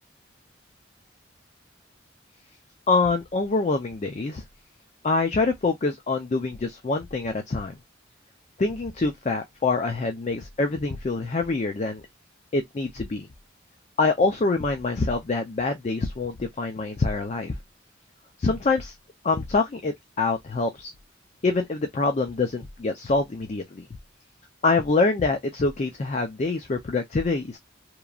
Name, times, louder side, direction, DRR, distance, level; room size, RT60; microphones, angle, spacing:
voice 1, 2.9-4.4 5.0-7.7 8.6-12.0 12.5-13.3 14.0-17.6 18.4-18.9 19.2-20.9 21.4-23.8 24.6-27.6, left 3 dB, 35° left, 0.4 m, -25 dB
3.0 x 2.5 x 2.2 m
head